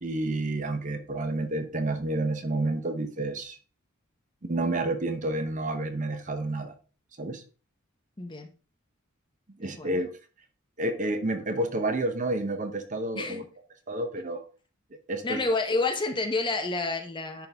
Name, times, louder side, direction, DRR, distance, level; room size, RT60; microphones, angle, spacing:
voice 1, 0.0-3.6 4.4-6.7 7.2-7.4 9.6-10.1 10.8-13.4 13.9-14.4 15.1-15.4, right 2 dB, 35° right, 0.8 m, -29 dB
voice 2, 8.2-8.5 9.6-10.0 13.1-13.4 15.2-17.5, left 3 dB, 20° left, 0.8 m, -29 dB
10.5 x 3.9 x 3.5 m
head